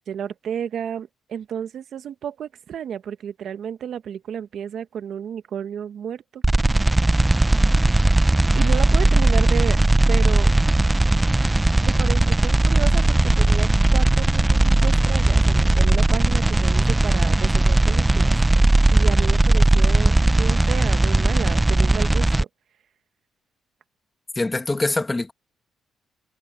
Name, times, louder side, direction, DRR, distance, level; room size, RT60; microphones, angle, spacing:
voice 1, 0.1-6.4 8.5-9.8 10.1-10.5 11.8-18.4 18.9-22.5, right 8 dB, 65° right, 1.3 m, -32 dB
sound 1, 6.4-22.4, right 2 dB, 15° right, 0.7 m, -18 dB
voice 2, 24.4-25.3, left 2 dB, 20° left, 2.5 m, -24 dB
cardioid pair, 90°, 0 cm